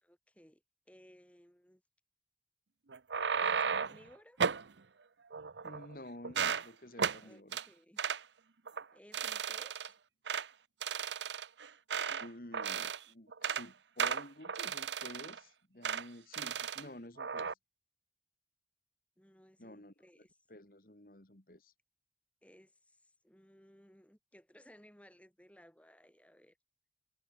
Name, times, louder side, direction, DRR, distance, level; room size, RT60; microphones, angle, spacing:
voice 1, 0.0-1.8 3.4-4.4 7.1-8.1 8.9-10.0 19.2-20.4 22.4-26.6, equal, 5° left, 4.4 m, -60 dB
sound 1, 2.9-4.0 4.4-4.7 5.3-5.9 6.2-6.7 7.0-7.2 7.5-7.7 8.0-8.2 8.7-8.8 9.1-9.9 10.3-10.5 10.8-12.3 12.5-13.0 13.3-13.7 14.0-15.4 15.8-16.0 16.3-16.8 17.2-17.5, right 6 dB, 85° right, 0.8 m, -35 dB
voice 2, 5.6-7.6 12.1-17.6 19.6-19.9 20.5-21.7, left 1 dB, 50° left, 2.4 m, -51 dB
head